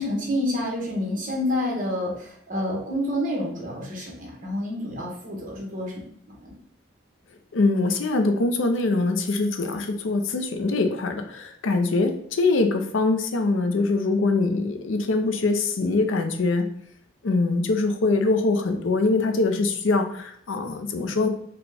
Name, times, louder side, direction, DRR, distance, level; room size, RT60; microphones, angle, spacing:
voice 1, 0.0-6.5, left 1 dB, 45° right, -2 dB, 1.1 m, -28 dB
voice 2, 7.5-16.7 17.2-21.3, left 3 dB, 80° left, 6 dB, 0.5 m, -23 dB
4.0 x 2.2 x 3.4 m, 0.64 s
head